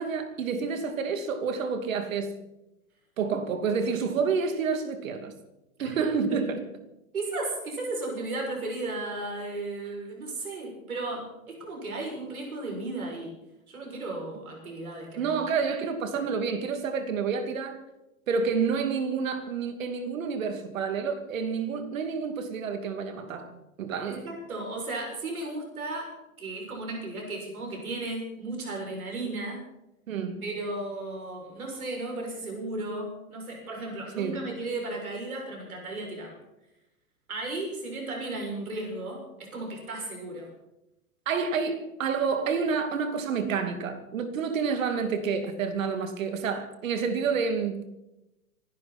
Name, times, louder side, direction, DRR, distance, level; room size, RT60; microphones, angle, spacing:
voice 1, 0.0-2.4 3.2-5.4 5.8-6.6 15.2-17.8 18.3-23.5 23.8-24.3 30.1-30.4 34.2-34.5 41.3-47.9, right 5 dB, 70° right, 2.7 m, -29 dB
voice 2, 7.1-13.4 13.7-15.4 24.1-29.6 30.4-36.4 37.3-40.5, right 2 dB, 85° right, 7.0 m, -35 dB
26.5 x 12.0 x 4.4 m
hypercardioid pair, 120°, 42 cm